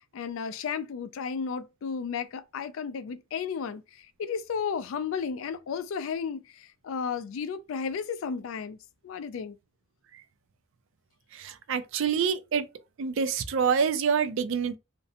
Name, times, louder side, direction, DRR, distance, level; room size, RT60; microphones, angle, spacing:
voice 1, 0.1-8.8 9.0-9.6, left 6 dB, 65° left, 0.3 m, -33 dB
voice 2, 11.3-12.6 13.0-14.8, right 6 dB, 65° right, 0.4 m, -27 dB
2.5 x 2.0 x 2.7 m
head